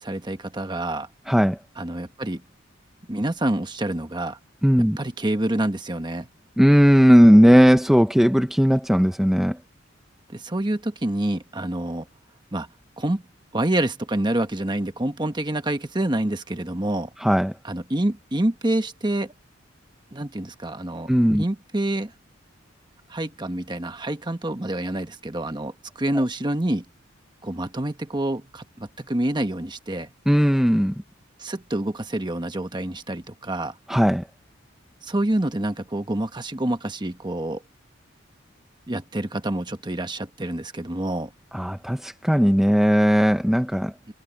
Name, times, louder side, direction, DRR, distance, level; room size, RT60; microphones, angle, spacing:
voice 1, 0.0-1.1 1.8-2.4 3.1-4.4 5.0-6.3 10.3-12.0 12.5-12.7 13.0-13.2 13.5-17.1 17.6-19.3 20.1-21.1 21.4-22.1 23.1-26.8 27.4-30.1 31.4-33.7 35.0-37.6 38.9-41.3 44.1-44.2, right 1 dB, 20° right, 1.2 m, -27 dB
voice 2, 1.3-1.6 4.6-5.0 6.6-9.6 17.2-17.5 21.1-21.4 26.1-26.2 30.3-30.9 33.9-34.3 41.5-43.9, equal, ahead, 0.6 m, -17 dB
head